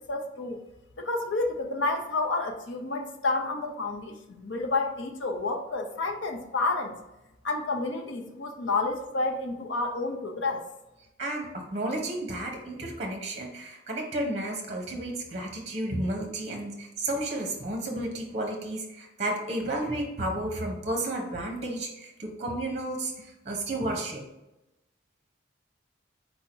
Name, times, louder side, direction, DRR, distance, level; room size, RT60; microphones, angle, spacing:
voice 1, 0.1-0.6 1.0-6.9 7.4-10.6, left 3 dB, 85° left, 4 dB, 0.7 m, -30 dB
voice 2, 11.2-24.2, right 1 dB, 35° right, 1 dB, 0.9 m, -32 dB
4.3 x 2.7 x 4.4 m, 0.94 s
head